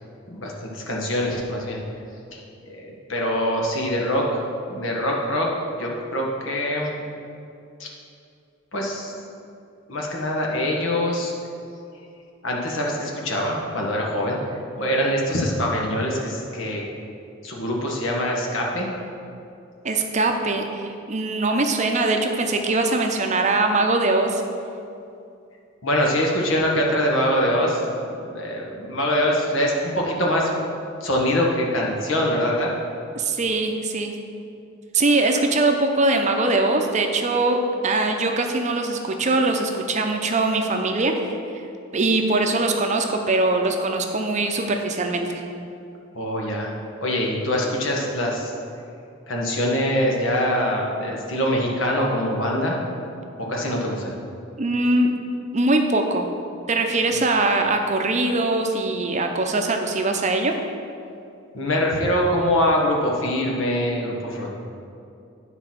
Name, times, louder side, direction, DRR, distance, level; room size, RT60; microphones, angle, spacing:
voice 1, 0.3-1.8 2.3-4.4 4.7-5.5 5.8-6.9 7.8-7.9 8.7-9.1 9.9-11.3 12.4-14.4 14.8-16.8 17.4-18.9 25.8-30.5 31.0-32.7 46.1-46.7 47.0-48.5 49.3-52.8 53.5-54.1 61.5-64.5, equal, 70° left, -1 dB, 1.5 m, -24 dB
voice 2, 19.8-24.4 33.2-34.1 34.9-41.1 41.9-45.4 54.6-55.1 55.5-56.3 56.7-60.5, right 2 dB, 35° right, 4 dB, 0.6 m, -22 dB
9.9 x 4.1 x 5.9 m, 2.6 s
head